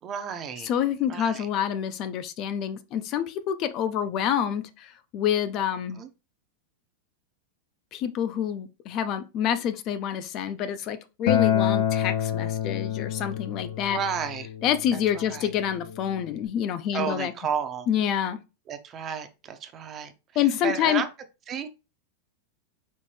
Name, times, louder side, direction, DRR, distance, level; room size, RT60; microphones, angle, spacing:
voice 1, 0.0-0.7 1.1-1.5 6.0-6.1 13.9-14.5 14.9-15.5 16.9-17.9 18.7-21.1 21.5-21.7, right 7 dB, 25° right, 0.6 m, -32 dB
voice 2, 0.6-6.0 7.9-14.0 14.6-17.3 17.9-18.4 20.4-21.0, left 9 dB, 35° left, 0.4 m, -27 dB
Acoustic guitar, 11.3-16.5, left 10 dB, 85° left, 0.6 m, -28 dB
4.3 x 3.1 x 3.2 m
supercardioid pair, 150°, 0 cm